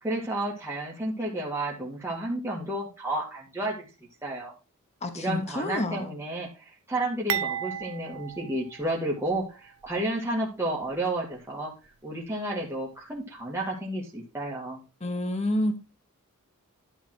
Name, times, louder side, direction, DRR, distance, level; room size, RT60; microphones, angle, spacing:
voice 1, 0.0-3.8 4.2-4.5 5.2-6.5 6.9-11.7 12.0-14.8, right 1 dB, 10° right, 2.0 m, -31 dB
voice 2, 5.0-6.1 15.0-15.8, left 1 dB, 30° left, 1.0 m, -29 dB
sound 1, 7.3-9.5 9.8-10.0 10.8-11.0, right 10 dB, 70° right, 0.6 m, -34 dB
11.5 x 4.0 x 6.2 m
head